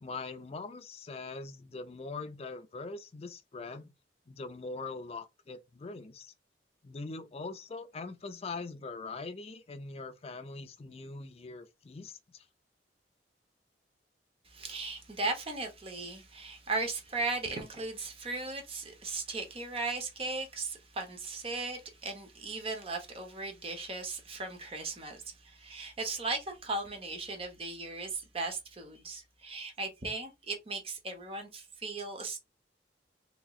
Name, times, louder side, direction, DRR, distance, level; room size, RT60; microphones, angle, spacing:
voice 1, 0.0-3.9 4.3-6.3 6.8-12.4, left 3 dB, 35° left, 0.4 m, -42 dB
voice 2, 14.4-32.4, right 3 dB, 30° right, 0.8 m, -37 dB
3.5 x 2.9 x 2.3 m
head